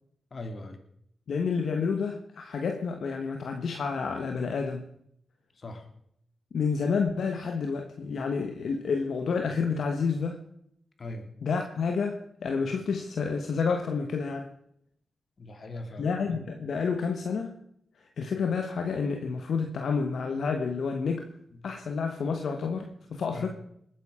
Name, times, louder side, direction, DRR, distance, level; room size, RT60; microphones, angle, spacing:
voice 1, 0.3-0.8 5.6-5.8 11.0-11.3 15.4-16.4 23.3-23.5, left 2 dB, 55° left, 6 dB, 2.7 m, -40 dB
voice 2, 1.3-4.9 6.5-10.4 11.4-14.5 16.0-17.6 18.0-21.3 21.6-23.5, left 5 dB, 75° left, 5 dB, 1.2 m, -29 dB
20.5 x 9.2 x 5.0 m, 0.72 s
cardioid pair, 50°, 0 cm